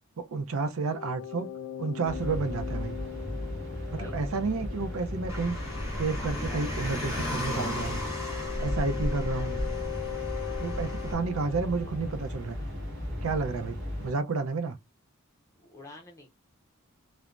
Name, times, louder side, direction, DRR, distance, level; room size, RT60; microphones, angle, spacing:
voice 1, 0.2-1.5 1.8-3.0 3.9-5.6 6.0-8.0 8.6-9.6 10.6-12.6 13.2-14.8, right 4 dB, 80° right, 0.5 m, -31 dB
sound 1, 0.9-12.5, left 11 dB, 75° left, 0.4 m, -41 dB
sound 2, 2.0-14.1, left 1 dB, 55° right, 1.1 m, -36 dB
Car, 5.3-11.1, left 1 dB, 15° right, 1.1 m, -35 dB
voice 2, 6.1-8.0 15.7-16.3, left 1 dB, 15° left, 0.5 m, -45 dB
3.1 x 2.0 x 2.4 m
head